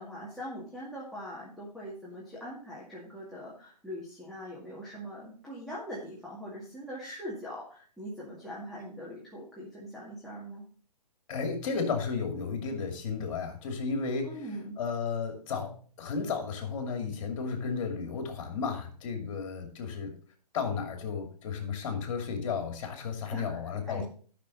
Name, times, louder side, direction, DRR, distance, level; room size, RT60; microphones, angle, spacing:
voice 1, 0.0-10.6 14.2-14.8 23.3-24.1, equal, ahead, -8 dB, 2.2 m, -42 dB
voice 2, 11.3-14.5 14.8-20.1 20.5-24.1, left 5 dB, 50° left, 4 dB, 2.6 m, -33 dB
12.0 x 6.2 x 4.1 m, 0.43 s
hypercardioid pair, 135°, 21 cm